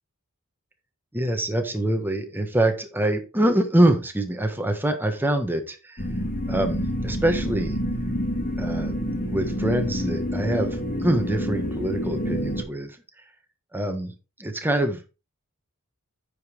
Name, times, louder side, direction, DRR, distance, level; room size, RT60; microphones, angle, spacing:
voice 1, 1.1-6.0 6.5-7.8 8.6-9.0 9.3-13.0 13.7-14.1 14.4-15.1, right 1 dB, 10° right, 5 dB, 1.3 m, -24 dB
sound 1, 6.0-12.6, equal, 40° left, 2.1 m, -28 dB
9.2 x 5.2 x 4.5 m, 0.30 s
head